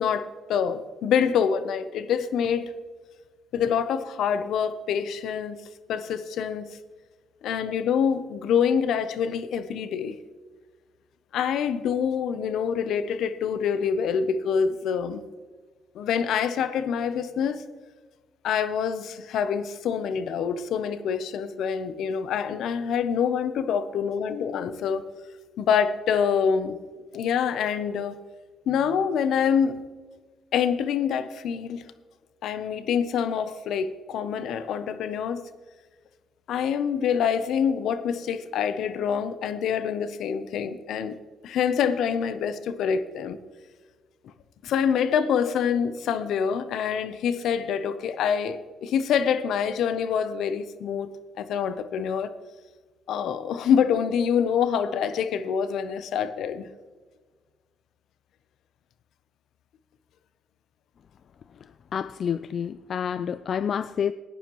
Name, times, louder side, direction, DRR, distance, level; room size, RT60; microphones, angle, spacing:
voice 1, 0.0-2.7 3.5-5.6 5.9-6.8 7.4-10.2 11.3-15.2 15.9-17.6 18.4-25.0 25.6-26.8 27.1-28.2 28.7-29.8 30.5-31.8 32.4-35.5 36.5-41.1 41.4-43.4 44.6-51.1 51.4-52.3 53.1-56.7, left 7 dB, 80° left, 12 dB, 0.7 m, -26 dB
voice 2, 61.9-64.1, left 8 dB, 55° left, 14 dB, 0.3 m, -28 dB
17.0 x 10.0 x 3.1 m, 1.4 s
cardioid pair, 90°, 0 cm